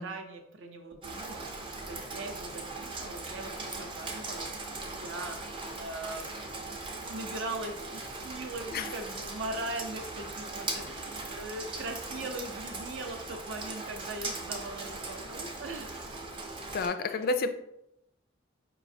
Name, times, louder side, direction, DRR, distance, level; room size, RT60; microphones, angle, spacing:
voice 1, 0.0-6.3 6.9-16.1 17.0-17.3, right 2 dB, 65° right, 4 dB, 0.6 m, -40 dB
Rain, 1.0-16.9, right 2 dB, 25° right, 0.5 m, -39 dB
voice 2, 16.7-17.5, left 3 dB, 50° left, 8 dB, 0.3 m, -29 dB
4.9 x 3.0 x 2.6 m, 0.80 s
head